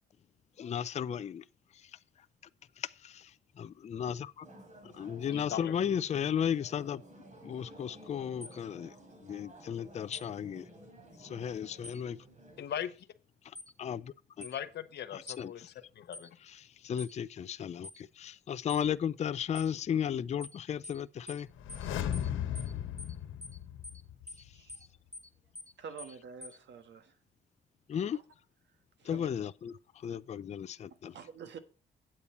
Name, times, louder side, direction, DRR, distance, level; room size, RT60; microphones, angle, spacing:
voice 1, 0.6-1.4 2.8-3.3 3.6-4.5 4.8-7.0 7.4-8.9 9.2-10.7 11.2-12.2 13.8-14.5 15.1-15.5 16.8-21.5 27.9-28.2 29.1-29.7 30.0-31.1, left 8 dB, 35° left, 0.4 m, -35 dB
sound 1, 4.4-12.6, right 1 dB, 35° right, 3.7 m, -54 dB
voice 2, 5.3-5.7 12.6-12.9 14.4-16.4, left 10 dB, 60° left, 0.8 m, -39 dB
sound 2, 8.4-8.6 10.1-10.3 11.8-12.0 13.5-13.7 14.4-14.6 15.3-15.4 16.1-16.3 17.0-17.1 17.8-18.0 18.7-18.9 19.5-19.7 20.4-20.6 20.8-21.0 21.3-21.4 21.7-21.9 22.1-22.3 22.5-22.7 23.0-23.1 23.4-23.6 23.8-24.0 24.3-24.4 24.7-24.9 25.1-25.3 25.5-25.7 26.0-26.1 26.4-26.6, left 2 dB, 10° left, 1.1 m, -46 dB
sound 3, 21.5-24.4 24.7-24.8, left 10 dB, 90° left, 1.3 m, -36 dB
voice 3, 25.8-27.1 28.1-28.2 29.0-29.3 31.1-31.6, right 6 dB, 65° right, 1.4 m, -47 dB
8.6 x 8.3 x 4.2 m
cardioid pair, 90°, 20 cm